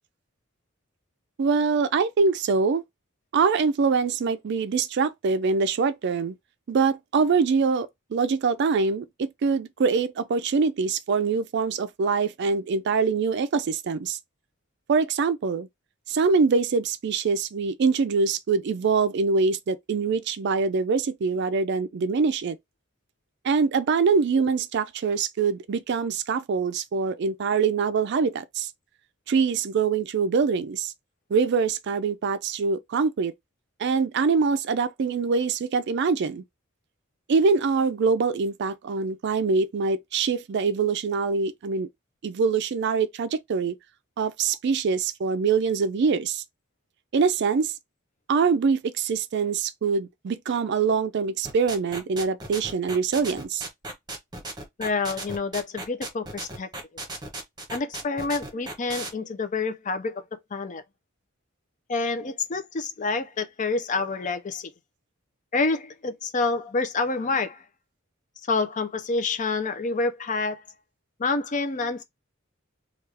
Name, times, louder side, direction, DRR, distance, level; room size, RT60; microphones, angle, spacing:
voice 1, 1.4-2.8 3.3-6.4 6.7-14.2 14.9-15.7 16.1-22.6 23.4-28.7 29.3-30.9 31.3-33.3 33.8-36.4 37.3-41.9 42.2-43.8 44.2-46.4 47.1-47.7 48.3-53.6, right 5 dB, 60° right, 0.4 m, -24 dB
sound 1, 51.4-59.1, right 2 dB, 20° right, 1.0 m, -35 dB
voice 2, 54.8-56.7 57.7-60.2 60.5-60.8 61.9-64.7 65.5-67.6 68.5-70.6 71.2-72.0, left 3 dB, 40° left, 0.5 m, -27 dB
3.4 x 2.4 x 3.3 m
head